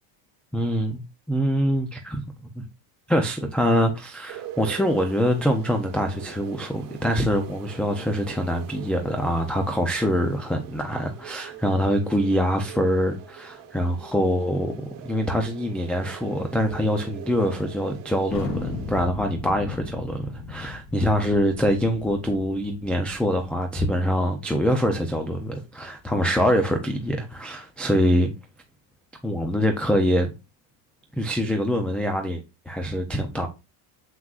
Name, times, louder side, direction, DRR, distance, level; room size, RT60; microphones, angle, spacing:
voice 1, 0.5-1.0 1.3-2.2 2.5-2.7 3.1-14.7 15.0-28.3 29.2-30.3 31.2-33.5, equal, 5° left, 0.3 m, -24 dB
sound 1, 4.3-19.1, right 10 dB, 55° right, 1.4 m, -43 dB
Thunder, 18.3-23.5, left 3 dB, 50° left, 4.2 m, -36 dB
7.6 x 5.8 x 2.4 m
cardioid pair, 155°, 48 cm